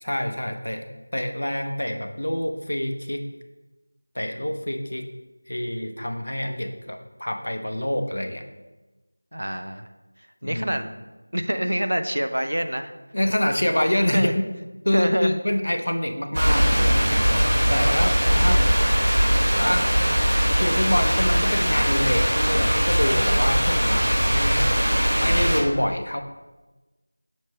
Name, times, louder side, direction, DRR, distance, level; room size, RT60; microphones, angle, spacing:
voice 1, 0.0-3.3 4.1-5.1 5.5-8.4 10.4-10.8 13.1-14.4 14.8-17.3 17.7-18.6 19.6-20.1 20.6-26.2, left 1 dB, 75° left, 6 dB, 0.6 m, -26 dB
voice 2, 9.3-9.9 10.4-10.9 11.3-12.9 14.1-14.3 14.9-15.4 18.4-18.7 19.6-19.8, equal, 85° right, 8 dB, 0.5 m, -26 dB
sound 1, 16.3-25.6, equal, 60° right, 1.8 m, -20 dB
7.2 x 3.0 x 4.4 m, 1.2 s
figure-of-eight pair, 175°, 0 cm